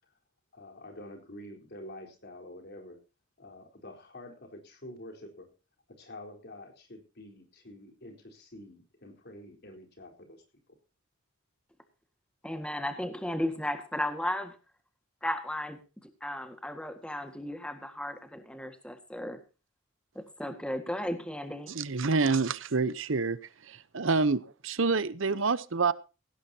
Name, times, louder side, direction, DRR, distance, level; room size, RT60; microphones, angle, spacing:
voice 1, 0.5-3.0 3.4-5.5 5.9-10.4, left 1 dB, 55° left, 4 dB, 4.2 m, -47 dB
voice 2, 12.4-14.6 15.2-19.4 20.2-21.7, left 1 dB, 5° left, 7 dB, 1.8 m, -35 dB
voice 3, 21.7-23.4 23.6-25.9, right 4 dB, 70° right, 17 dB, 0.9 m, -27 dB
17.5 x 16.0 x 2.8 m, 0.32 s
head